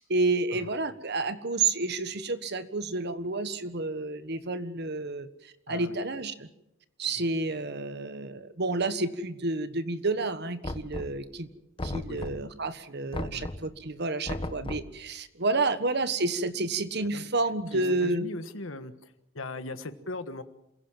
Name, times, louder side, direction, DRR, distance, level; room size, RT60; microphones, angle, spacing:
voice 1, 0.0-6.5 7.0-11.5 11.8-18.2, right 3 dB, 55° right, 12 dB, 1.5 m, -30 dB
Knock, 10.6-11.4 11.8-12.6 13.1-13.8 14.3-15.0, left 1 dB, 25° left, 1.1 m, -36 dB
voice 2, 17.7-20.4, left 2 dB, 80° left, 10 dB, 1.5 m, -39 dB
28.0 x 16.0 x 7.4 m, 0.86 s
head